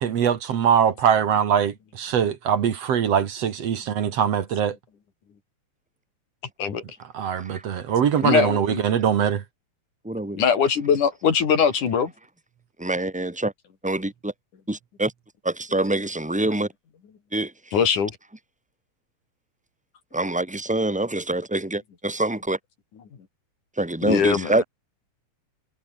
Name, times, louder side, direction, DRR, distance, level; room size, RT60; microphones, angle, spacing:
voice 1, 0.0-4.8 7.1-9.4, right 8 dB, 60° right, 2.6 m, -22 dB
voice 2, 8.2-8.8 10.4-12.1 17.7-18.1 24.0-24.6, left 7 dB, 85° left, 4.8 m, -21 dB
voice 3, 10.0-10.4 12.8-13.5 13.8-14.3 14.7-15.1 15.4-16.7 17.3-17.5 20.1-22.6 23.8-24.6, right 2 dB, 10° right, 0.4 m, -25 dB
omnidirectional pair, 3.5 m